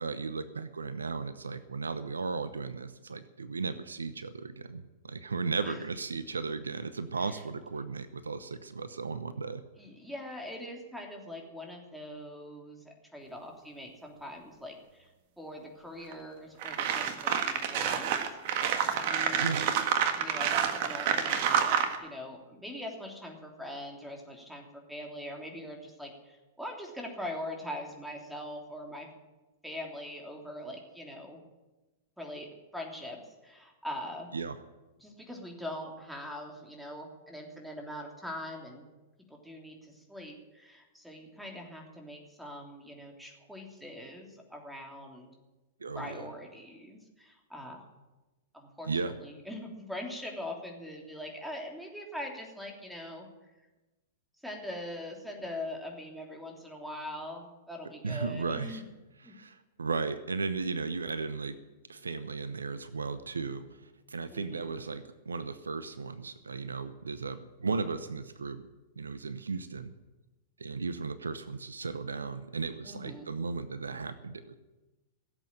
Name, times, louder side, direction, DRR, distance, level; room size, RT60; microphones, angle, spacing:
voice 1, 0.0-9.6 19.4-19.7 34.3-34.6 45.8-46.3 48.8-49.1 58.0-58.8 59.3-61.6 61.9-63.6 64.1-68.6 69.0-69.9 70.6-74.5, right 4 dB, 80° right, 13 dB, 0.8 m, -35 dB
voice 2, 9.8-15.1 15.4-18.2 18.9-19.8 20.1-29.1 29.6-31.4 32.2-34.3 35.0-38.9 39.3-45.3 45.9-47.8 48.5-53.3 54.4-58.8 59.2-59.3 64.3-64.7 72.8-73.3, left 1 dB, ahead, 1 dB, 3.3 m, -42 dB
sound 1, 16.1-16.2 16.6-22.0, right 8 dB, 50° right, 1.6 m, -28 dB
16.5 x 8.1 x 8.9 m, 1.1 s
figure-of-eight pair, 105°, 0 cm